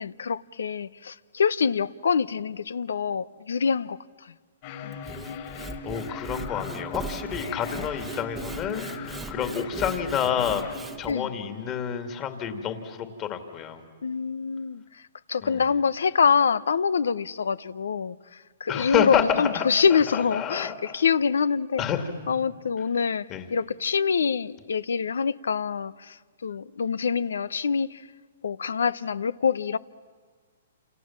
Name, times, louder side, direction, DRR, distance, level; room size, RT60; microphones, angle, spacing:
voice 1, 0.0-4.3 4.8-5.0 11.1-11.3 14.0-15.0 15.3-21.9 22.3-28.1 28.4-29.8, left 6 dB, 85° left, 0.8 m, -25 dB
sound 1, 4.6-10.8, left 4 dB, 45° left, 4.8 m, -38 dB
Sawing / Wood, 4.9-11.1, right 4 dB, 10° right, 1.0 m, -40 dB
voice 2, 5.5-10.7 11.0-13.8 15.4-15.6 18.7-20.9 21.8-22.1 23.3-23.4, left 8 dB, 25° left, 2.5 m, -29 dB
29.0 x 28.0 x 7.4 m
hypercardioid pair, 145°, 0 cm